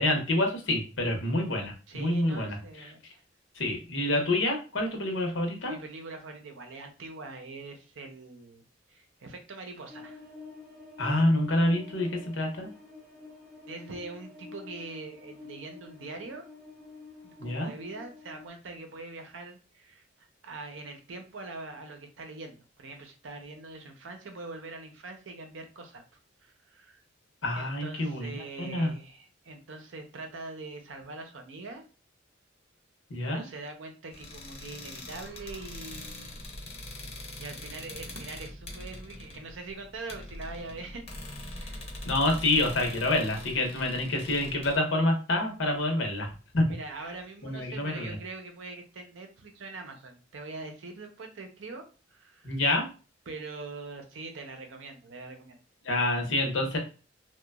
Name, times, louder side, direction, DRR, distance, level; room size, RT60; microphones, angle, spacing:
voice 1, 0.0-2.9 3.5-5.8 11.0-12.7 17.4-17.7 27.4-28.9 33.1-33.5 42.0-46.3 46.5-46.6 47.4-48.2 52.4-52.9 55.8-56.8, left 1 dB, 85° left, 3 dB, 0.8 m, -27 dB
voice 2, 1.9-3.2 5.7-10.2 13.7-16.5 17.2-26.0 26.4-27.0 27.6-31.8 33.3-36.4 37.4-41.1 41.6-41.9 46.7-51.9 52.1-52.6 53.3-55.6, right 3 dB, 80° right, 4 dB, 0.6 m, -43 dB
sound 1, 9.9-18.5, left 4 dB, 10° right, 0.5 m, -48 dB
sound 2, 34.1-44.8, left 1 dB, 35° left, 0.6 m, -42 dB
2.9 x 2.2 x 2.3 m, 0.34 s
head